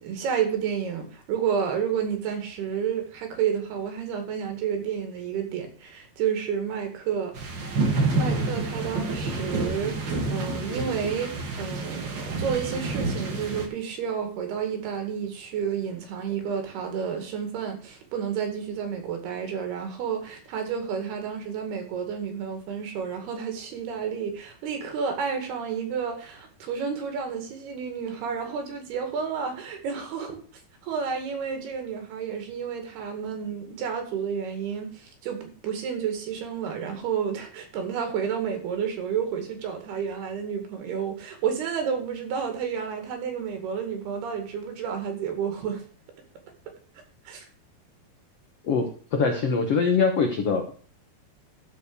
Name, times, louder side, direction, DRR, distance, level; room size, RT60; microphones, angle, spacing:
voice 1, 0.0-7.3 8.2-30.4 30.8-45.8 47.3-47.4, right 7 dB, 75° right, 4 dB, 4.1 m, -30 dB
sound 1, 7.3-13.7, right 3 dB, 50° right, 1.4 m, -28 dB
voice 2, 48.6-50.7, left 5 dB, 90° left, 3 dB, 1.3 m, -23 dB
13.0 x 4.9 x 6.8 m, 0.43 s
omnidirectional pair, 4.6 m